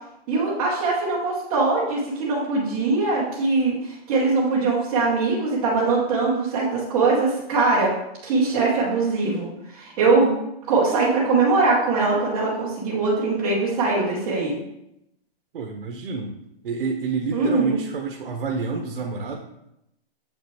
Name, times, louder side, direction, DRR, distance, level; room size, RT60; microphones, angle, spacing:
voice 1, 0.3-7.9 8.2-10.3 10.7-14.6 17.3-17.8, right 3 dB, 10° right, -9 dB, 0.6 m, -22 dB
voice 2, 15.5-16.4 16.6-19.4, right 4 dB, 70° right, 3 dB, 0.9 m, -28 dB
7.3 x 5.4 x 3.0 m, 0.82 s
hypercardioid pair, 170°, 31 cm